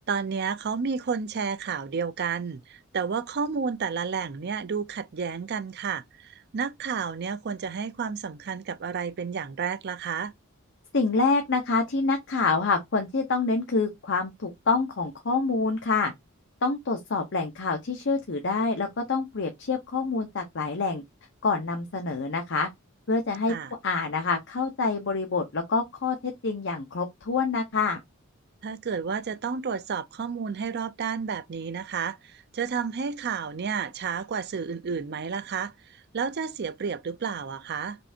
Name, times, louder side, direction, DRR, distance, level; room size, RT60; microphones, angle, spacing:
voice 1, 0.1-10.3 23.5-23.7 28.6-35.7 36.1-38.0, right 6 dB, 50° right, 0.5 m, -31 dB
voice 2, 10.9-16.1 16.6-21.0 21.4-22.7 23.1-23.5 23.8-28.0, left 4 dB, 55° left, 0.8 m, -26 dB
5.3 x 3.3 x 2.7 m
head